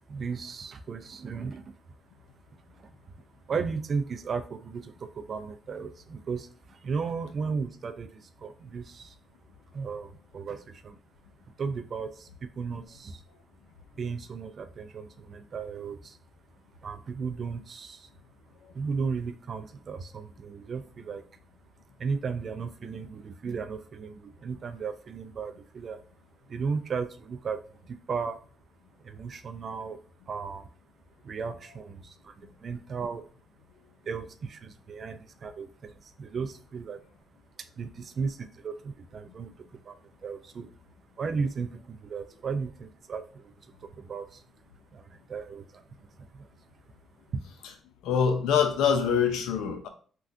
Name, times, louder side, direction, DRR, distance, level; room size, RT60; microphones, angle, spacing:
voice 1, 0.1-1.7 2.8-2.9 3.5-9.1 9.7-11.0 11.6-13.2 14.0-16.2 16.8-18.1 18.7-21.2 22.0-26.0 26.5-27.6 27.9-28.4 29.0-30.0 30.3-30.7 31.2-32.3 32.6-33.3 34.0-37.0 37.8-39.5 39.8-40.7 41.2-44.4 44.9-46.5 47.3-47.4, right 5 dB, 50° right, 10 dB, 0.4 m, -35 dB
voice 2, 48.0-49.9, left 7 dB, 90° left, 6 dB, 0.5 m, -24 dB
3.5 x 2.3 x 2.5 m, 0.42 s
cardioid pair, 90°, 0 cm